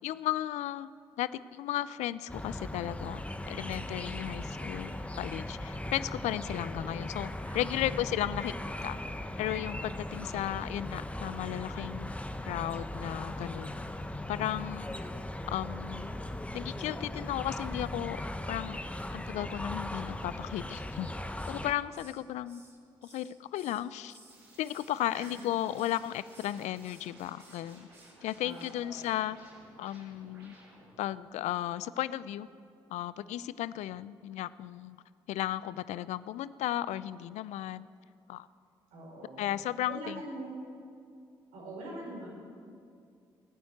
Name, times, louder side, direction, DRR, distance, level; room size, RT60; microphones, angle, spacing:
voice 1, 0.0-0.9 1.2-3.2 3.5-8.5 8.8-9.0 9.4-13.7 14.3-15.0 15.5-16.1 16.5-18.2 18.5-18.8 19.1-21.1 21.5-22.6 23.0-24.2 24.6-27.9 28.2-29.4 29.8-30.5 31.0-32.5 32.9-35.0 35.3-37.9 38.3-38.5 39.4-40.2, left 13 dB, 70° left, 17 dB, 0.5 m, -35 dB
sound 1, 2.3-21.7, left 1 dB, 10° left, 1.2 m, -38 dB
voice 2, 7.4-8.0 10.2-10.4 25.1-25.4 28.4-29.1 38.9-39.5 39.9-40.5 41.5-42.3, right 1 dB, 75° right, -2 dB, 4.8 m, -43 dB
Hiss, 20.9-21.7 21.9-24.4 24.6-25.5 25.8-26.0 26.3-27.1 27.4-27.6 27.9-28.2 28.5-28.7 29.0-29.2, right 2 dB, 20° right, 3.4 m, -59 dB
sound 2, 24.3-31.0, right 2 dB, 90° right, 2.7 m, -57 dB
19.5 x 9.4 x 7.9 m, 2.4 s
hypercardioid pair, 45°, 12 cm